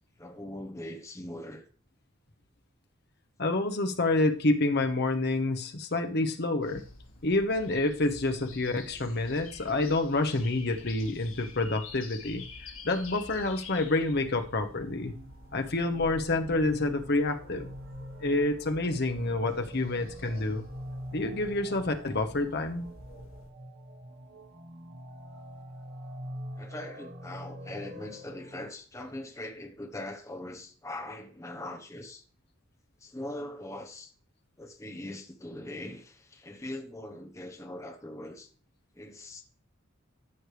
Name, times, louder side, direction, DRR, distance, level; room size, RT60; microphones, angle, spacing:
voice 1, 0.2-1.6 26.6-32.2 33.0-34.1 34.6-38.5 38.9-39.4, left 1 dB, 15° left, 1.1 m, -41 dB
voice 2, 3.4-6.8 7.2-15.1 15.5-17.7 18.2-20.7 21.1-22.9, left 2 dB, 55° left, 1.0 m, -28 dB
sound 1, 6.6-23.5, left 3 dB, 80° left, 2.0 m, -49 dB
sound 2, 14.0-28.7, equal, 55° right, 1.3 m, -45 dB
14.0 x 6.4 x 3.4 m
head